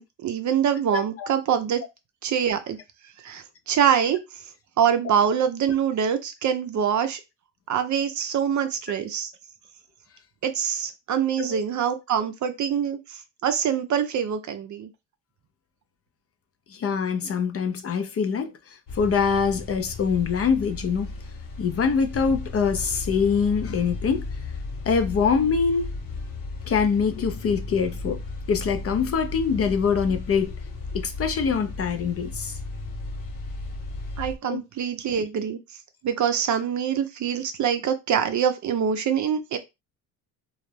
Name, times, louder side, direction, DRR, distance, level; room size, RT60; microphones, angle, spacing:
voice 1, 0.0-1.8 2.2-2.8 3.2-4.2 4.8-7.2 7.7-9.3 10.4-14.9 34.2-35.6 36.0-39.6, right 8 dB, 45° right, 0.5 m, -24 dB
voice 2, 0.9-1.3 11.4-11.6 16.7-21.1 21.6-24.3 24.9-25.9 26.7-28.2 28.5-30.5 30.9-32.6 34.5-34.6, left 6 dB, 35° left, 0.5 m, -24 dB
sound 1, 18.9-34.3, left 3 dB, 50° left, 0.9 m, -35 dB
2.4 x 2.0 x 3.2 m
supercardioid pair, 80°, 42 cm